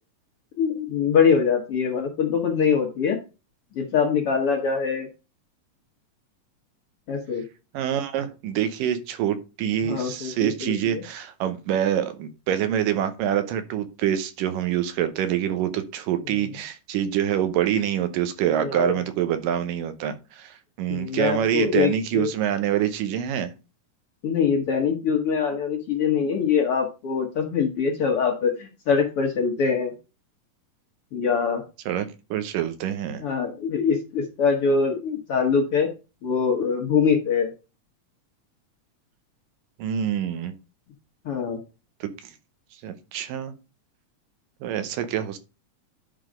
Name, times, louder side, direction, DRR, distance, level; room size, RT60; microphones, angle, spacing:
voice 1, 0.6-3.2 3.7-5.1 7.1-7.4 9.8-11.0 18.6-19.0 20.9-22.3 24.2-29.9 31.1-31.6 33.2-35.9 36.2-37.5 41.2-41.6, left 6 dB, 60° left, 2 dB, 1.6 m, -23 dB
voice 2, 7.7-23.5 31.9-33.2 39.8-40.5 42.8-43.5 44.6-45.4, right 10 dB, 80° right, 10 dB, 2.5 m, -26 dB
10.5 x 3.9 x 5.0 m, 0.31 s
omnidirectional pair, 3.8 m